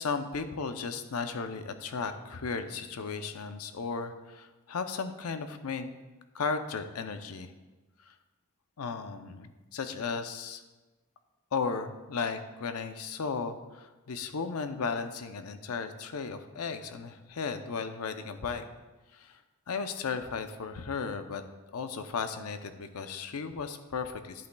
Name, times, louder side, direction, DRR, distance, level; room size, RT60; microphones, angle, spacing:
voice 1, 0.0-5.9 6.3-7.5 8.1-8.2 8.8-10.6 11.5-18.6 19.1-19.4 19.7-21.4 21.7-24.5, left 5 dB, 85° left, 9 dB, 0.6 m, -35 dB
10.5 x 8.4 x 2.3 m, 1.2 s
head